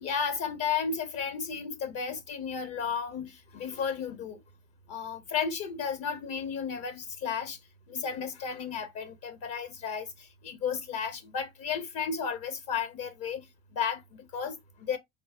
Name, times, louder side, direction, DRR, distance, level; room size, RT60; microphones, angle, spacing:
voice 1, 0.0-4.4 4.9-7.6 7.9-13.5 13.7-15.0, left 6 dB, 50° left, 0.6 m, -33 dB
4.5 x 2.0 x 3.4 m
figure-of-eight pair, 55°, 31 cm